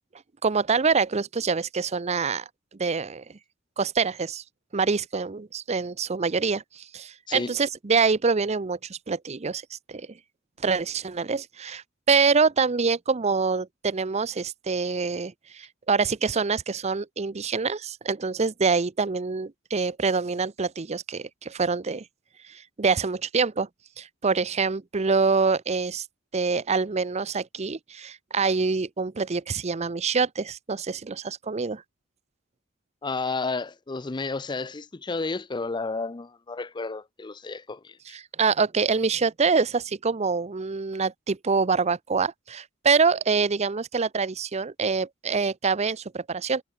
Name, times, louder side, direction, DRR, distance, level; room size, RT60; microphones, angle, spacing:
voice 1, 0.4-2.4 2.8-3.2 3.8-4.4 4.7-9.6 9.9-10.1 10.6-22.0 22.5-23.7 24.0-26.0 26.3-31.8 38.1-46.6, right 5 dB, 35° right, 0.6 m, -25 dB
voice 2, 33.0-38.0, left 3 dB, 20° left, 0.5 m, -31 dB
head